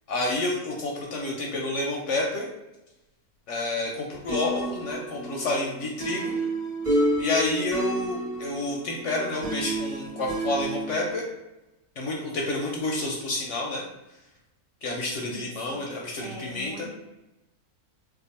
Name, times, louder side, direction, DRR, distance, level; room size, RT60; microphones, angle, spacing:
voice 1, 0.1-2.5 3.5-6.3 7.2-11.2 12.0-13.8 14.8-16.9, left 2 dB, 65° left, -1 dB, 0.8 m, -29 dB
sound 1, 4.3-11.1, right 1 dB, 30° right, 0.9 m, -30 dB
voice 2, 15.2-15.8 16.2-16.9, left 1 dB, 65° right, -1 dB, 1.0 m, -41 dB
2.7 x 2.3 x 4.0 m, 0.97 s
omnidirectional pair, 1.6 m